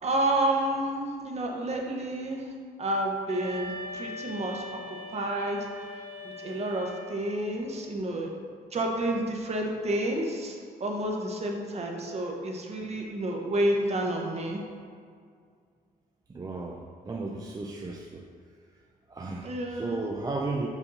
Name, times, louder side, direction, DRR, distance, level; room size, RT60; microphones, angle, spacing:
voice 1, 0.0-2.4 2.8-4.6 5.1-5.7 6.2-8.3 8.7-14.6 19.4-20.0, right 1 dB, 40° right, 0 dB, 1.0 m, -30 dB
sound 1, 3.3-7.4, left 1 dB, 60° right, 1.4 m, -41 dB
voice 2, 16.3-18.3 19.1-20.7, right 3 dB, 20° right, 0 dB, 0.4 m, -34 dB
7.1 x 2.7 x 5.4 m, 2.1 s
cardioid pair, 100°, 16 cm